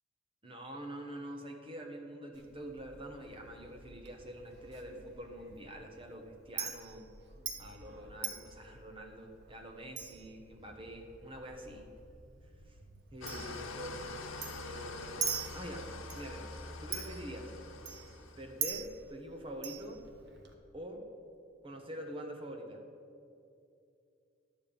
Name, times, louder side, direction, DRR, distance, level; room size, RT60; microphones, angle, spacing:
voice 1, 0.4-7.1 7.6-11.9 12.7-12.8 13.1-14.1 14.6-15.9 16.1-16.5 16.8-17.5 18.4-20.0 20.7-21.0 21.6-22.8, right 1 dB, 25° right, 3 dB, 1.2 m, -45 dB
Chink clink, 2.3-20.5, right 7 dB, 55° right, 1.2 m, -45 dB
Engine starting / Idling, 13.2-18.6, left 2 dB, 90° left, 1.1 m, -44 dB
11.5 x 5.3 x 8.7 m, 2.5 s
head